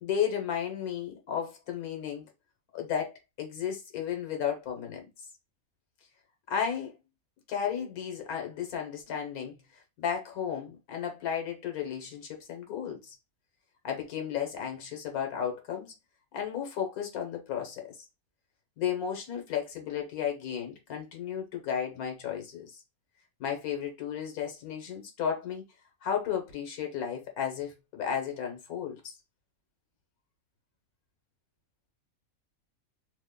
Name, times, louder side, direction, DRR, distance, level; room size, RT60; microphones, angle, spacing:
voice 1, 0.0-2.3 2.7-5.0 6.5-6.9 7.5-9.6 10.0-13.1 13.8-15.9 16.3-17.9 18.8-22.8 23.4-25.6 26.0-29.1, left 8 dB, 90° left, 1.4 m, -33 dB
3.0 x 2.1 x 3.6 m
omnidirectional pair, 1.5 m